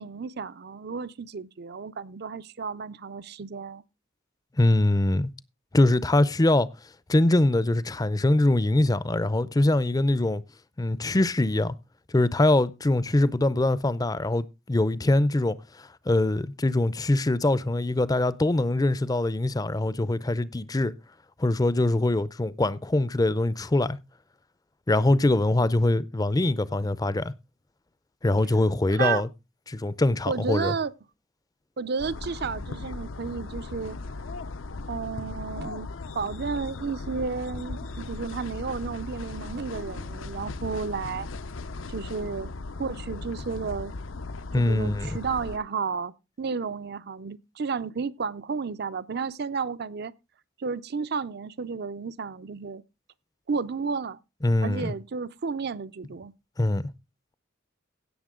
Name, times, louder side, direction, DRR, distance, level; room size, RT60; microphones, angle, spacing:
voice 1, 0.0-3.8 28.9-29.2 30.3-30.9 31.8-34.0 34.9-35.9 36.1-41.3 41.9-43.9 44.6-50.1 50.6-52.8 53.5-54.2 54.6-56.3, right 5 dB, 55° right, 0.5 m, -32 dB
voice 2, 4.6-5.3 5.7-6.7 7.1-10.4 10.8-11.7 12.1-20.9 21.4-24.0 24.9-27.3 28.2-29.3 29.7-30.7 44.5-45.1 54.4-54.9 56.6-56.9, left 2 dB, 20° left, 0.5 m, -23 dB
sound 1, 32.0-45.6, left 3 dB, 75° left, 0.7 m, -37 dB
16.5 x 6.8 x 3.7 m
head